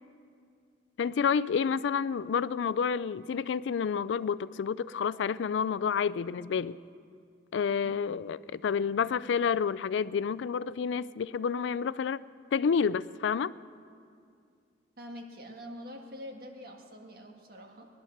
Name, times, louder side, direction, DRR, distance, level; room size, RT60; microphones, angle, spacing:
voice 1, 1.0-6.8 7.5-12.2 12.5-13.5, left 6 dB, 85° left, 0.4 m, -29 dB
voice 2, 15.0-17.9, equal, 55° right, 1.8 m, -45 dB
19.5 x 11.0 x 6.5 m
head